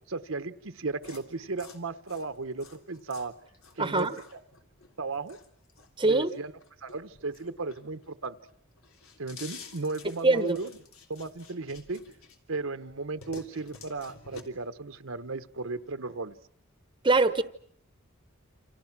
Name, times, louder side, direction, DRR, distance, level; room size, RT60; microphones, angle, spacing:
voice 1, 0.1-3.3 3.8-4.4 5.0-5.4 6.1-6.5 6.8-8.3 9.2-10.7 11.1-12.0 12.5-16.3, right 3 dB, 70° right, 10 dB, 1.1 m, -35 dB
sound 1, 1.0-8.1 8.5-12.6 12.9-14.4, left 4 dB, 85° left, 3.4 m, -50 dB
voice 2, 3.8-4.2 6.0-6.3 10.2-10.6 17.0-17.4, right 3 dB, 25° right, 11 dB, 1.1 m, -23 dB
28.5 x 27.5 x 6.1 m, 0.63 s
head